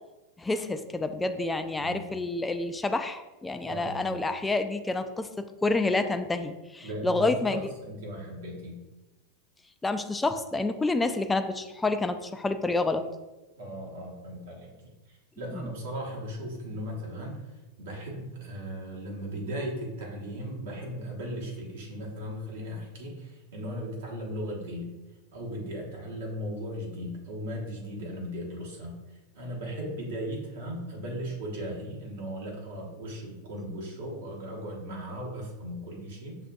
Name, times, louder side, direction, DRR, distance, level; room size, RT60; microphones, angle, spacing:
voice 1, 0.4-7.6 9.8-13.1 15.5-15.6, left 2 dB, 10° left, 8 dB, 0.3 m, -28 dB
voice 2, 1.8-2.1 3.6-4.3 6.8-8.8 13.6-24.9 25.3-36.4, equal, 70° right, -2 dB, 1.2 m, -37 dB
6.4 x 2.5 x 2.3 m, 1.1 s
hypercardioid pair, 95°, 0 cm